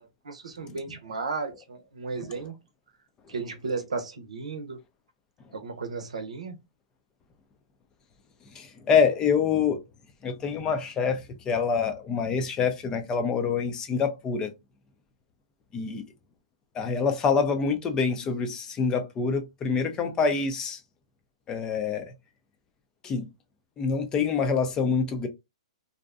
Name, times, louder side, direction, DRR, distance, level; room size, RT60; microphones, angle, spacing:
voice 1, 0.0-2.5 3.3-4.8 5.5-6.6, right 4 dB, 90° right, 0.7 m, -34 dB
voice 2, 8.5-9.8 10.2-14.5 15.7-16.0 16.7-20.8 21.5-22.1 23.0-23.3 23.8-25.3, left 5 dB, 20° left, 0.5 m, -26 dB
2.6 x 2.1 x 2.4 m
hypercardioid pair, 140°, 3 cm